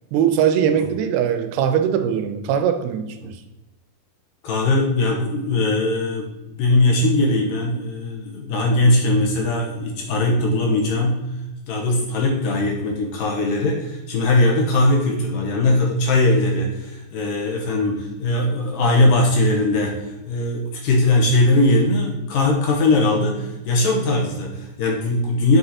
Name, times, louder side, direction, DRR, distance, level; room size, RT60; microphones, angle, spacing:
voice 1, 0.1-3.4, right 8 dB, 85° right, 8 dB, 2.5 m, -21 dB
voice 2, 4.4-11.2 11.7-20.0 20.3-25.6, left 2 dB, 70° left, -1 dB, 2.5 m, -20 dB
7.8 x 4.6 x 4.2 m, 1.0 s
omnidirectional pair, 4.5 m